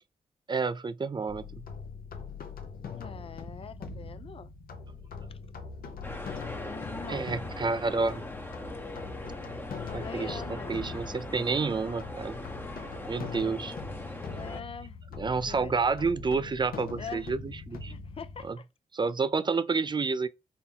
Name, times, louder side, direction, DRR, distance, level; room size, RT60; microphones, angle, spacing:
voice 1, 0.5-1.6 7.1-8.2 9.9-12.4 13.1-13.7 15.2-17.9 18.5-18.6 18.9-20.3, right 4 dB, 30° right, 0.4 m, -29 dB
sound 1, 1.3-18.5, left 5 dB, 80° left, 0.8 m, -42 dB
voice 2, 2.9-4.5 6.6-7.2 9.9-10.8 14.3-15.0 15.5-15.8 16.9-17.3 17.9-18.6, left 6 dB, 40° left, 0.4 m, -43 dB
sound 2, 6.0-14.6, left 1 dB, 15° left, 0.8 m, -40 dB
4.2 x 2.1 x 3.7 m
cardioid pair, 60°, 15 cm